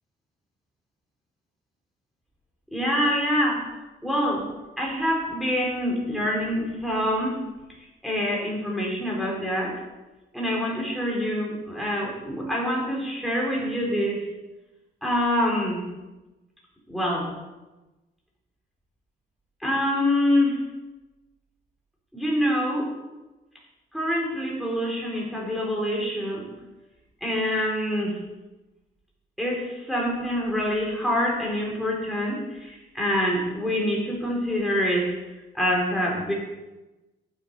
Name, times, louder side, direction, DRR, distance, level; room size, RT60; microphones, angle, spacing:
voice 1, 2.7-3.6 4.0-4.5 4.8-7.4 8.0-9.8 10.3-14.2 15.0-15.8 16.9-17.3 19.6-20.6 22.1-22.9 23.9-26.5 27.2-28.2 29.4-35.2 35.5-36.3, equal, ahead, -4 dB, 4.0 m, -25 dB
8.9 x 8.9 x 6.5 m, 1.1 s
cardioid pair, 90°, 20 cm